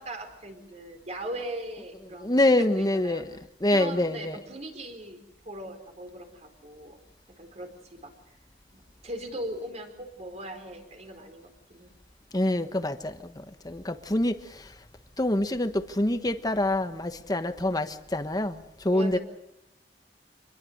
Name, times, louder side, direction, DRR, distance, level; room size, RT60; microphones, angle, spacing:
voice 1, 0.0-3.2 3.7-5.2 5.4-7.0 7.4-8.1 8.7-11.9 18.9-19.2, right 1 dB, 40° right, 5 dB, 4.3 m, -39 dB
voice 2, 2.2-3.3 3.6-4.4 12.3-13.2 13.6-14.6 15.2-19.2, left 1 dB, 20° left, 9 dB, 1.2 m, -26 dB
26.5 x 21.0 x 6.6 m, 0.86 s
head